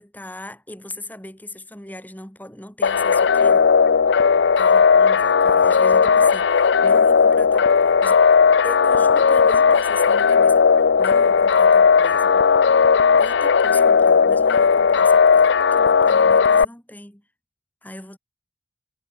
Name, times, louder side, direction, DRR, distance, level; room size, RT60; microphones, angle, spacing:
voice 1, 0.0-3.7 4.6-8.3 8.6-12.5 13.2-17.2 17.8-18.2, left 1 dB, 10° left, 4.6 m, -38 dB
sound 1, 2.8-16.6, left 5 dB, 70° left, 0.5 m, -16 dB
head